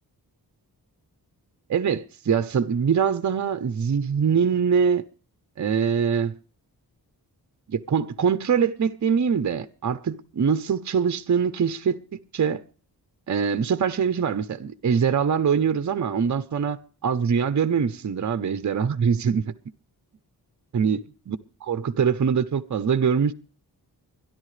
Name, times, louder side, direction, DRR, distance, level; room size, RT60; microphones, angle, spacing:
voice 1, 1.7-5.0 5.6-6.4 7.7-12.6 13.3-19.4 20.7-23.3, right 6 dB, 45° right, 0.7 m, -23 dB
25.0 x 11.0 x 3.2 m
wide cardioid pair, 145°, 40 cm